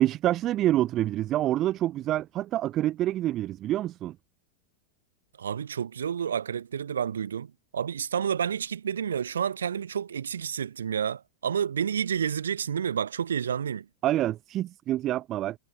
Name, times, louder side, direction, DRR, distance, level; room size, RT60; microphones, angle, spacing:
voice 1, 0.0-4.1 14.0-15.6, right 13 dB, 35° right, 1.5 m, -27 dB
voice 2, 5.4-13.9, right 8 dB, 70° right, 1.1 m, -30 dB
figure-of-eight pair, 90°, 0 cm